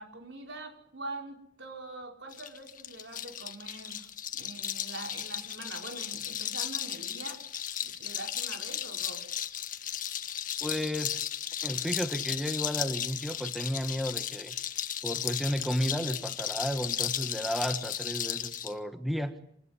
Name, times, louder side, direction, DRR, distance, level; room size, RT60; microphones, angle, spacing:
voice 1, 0.0-4.1 4.3-7.4 7.8-9.3, right 2 dB, 75° right, 4 dB, 5.6 m, -44 dB
sound 1, 2.3-18.7, left 10 dB, 45° left, 1.5 m, -35 dB
voice 2, 10.6-11.2 11.6-14.6 15.0-19.3, equal, ahead, 8 dB, 1.5 m, -33 dB
28.0 x 20.0 x 9.8 m, 0.68 s
head